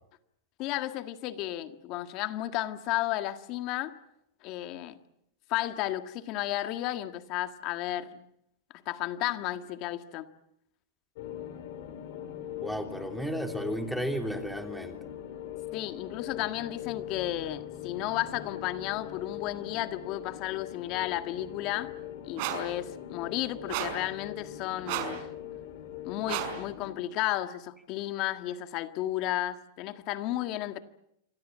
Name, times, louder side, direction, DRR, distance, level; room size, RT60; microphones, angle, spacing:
voice 1, 0.6-3.9 4.4-5.0 5.5-8.3 8.9-10.3 15.7-21.9 22.2-25.3 26.0-30.8, left 14 dB, 45° left, 1.7 m, -33 dB
sound 1, 11.1-27.0, left 10 dB, 60° left, 4.6 m, -41 dB
voice 2, 12.6-15.0, right 1 dB, ahead, 3.1 m, -33 dB
sound 2, 22.4-22.7 23.7-24.1 24.8-25.2 26.3-26.6, right 10 dB, 50° right, 5.4 m, -33 dB
27.5 x 24.0 x 7.6 m
supercardioid pair, 140°, 0 cm